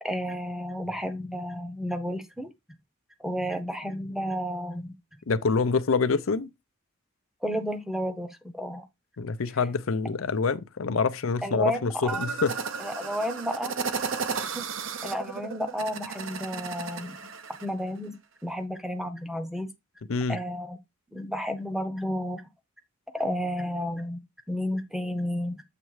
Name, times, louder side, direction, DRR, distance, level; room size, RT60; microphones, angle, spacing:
voice 1, 0.0-2.8 3.2-4.9 7.4-8.9 11.4-12.2 12.8-13.8 14.5-14.6 15.0-17.2 17.6-18.2 18.4-19.7 20.3-20.8 21.1-22.4 23.1-25.6, equal, ahead, 0.7 m, -32 dB
voice 2, 5.3-6.5 9.2-12.6 20.1-20.4, left 4 dB, 80° left, 0.6 m, -26 dB
sound 1, 12.1-17.7, right 5 dB, 65° right, 0.7 m, -34 dB
7.5 x 3.1 x 4.7 m
head